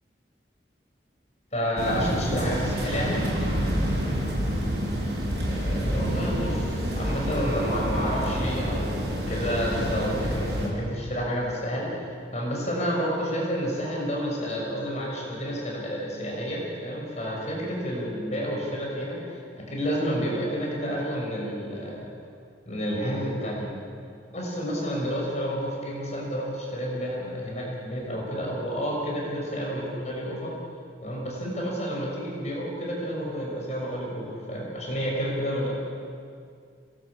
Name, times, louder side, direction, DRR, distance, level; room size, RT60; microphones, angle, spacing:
voice 1, 1.5-3.2 5.5-12.1 12.3-19.2 19.6-22.1 22.6-23.7 24.3-30.5 31.0-35.7, equal, 40° left, -3 dB, 6.2 m, -30 dB
sound 1, 1.8-10.7, equal, 65° right, 7.5 m, -28 dB
26.5 x 19.5 x 8.7 m, 2.3 s
head